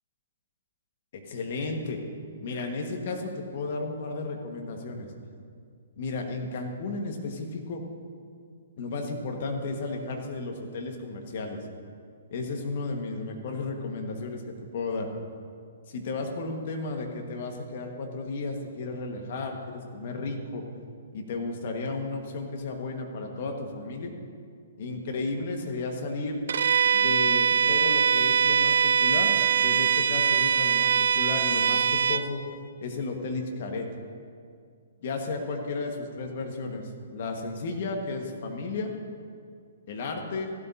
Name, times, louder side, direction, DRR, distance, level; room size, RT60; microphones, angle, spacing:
voice 1, 1.1-2.0 2.4-5.1 6.0-7.8 8.8-11.6 12.3-15.1 15.9-20.6 21.1-24.1 24.8-26.4 26.9-29.3 29.6-32.4 32.8-33.9 35.0-38.9 39.9-40.5, left 3 dB, 55° left, 3 dB, 1.7 m, -33 dB
Bowed string instrument, 26.5-32.3, right 7 dB, 70° right, 0.4 m, -22 dB
15.5 x 12.5 x 2.8 m, 2.2 s
hypercardioid pair, 130°, 0 cm